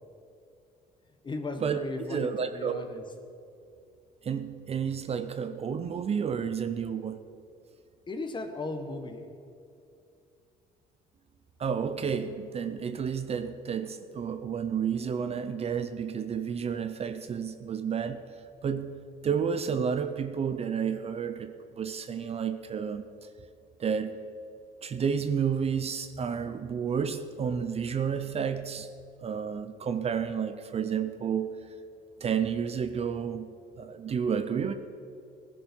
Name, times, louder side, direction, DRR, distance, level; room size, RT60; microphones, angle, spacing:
voice 1, 1.2-3.0 8.1-9.3, left 2 dB, 25° left, 6 dB, 1.4 m, -36 dB
voice 2, 2.1-2.9 4.2-7.2 11.6-18.2 18.6-19.0 19.2-23.0 23.8-24.2 24.8-28.9 29.2-31.5 32.2-33.5 33.8-34.7, right 7 dB, 35° right, 10 dB, 0.7 m, -31 dB
17.5 x 11.0 x 4.5 m, 2.5 s
cardioid pair, 110°, 17 cm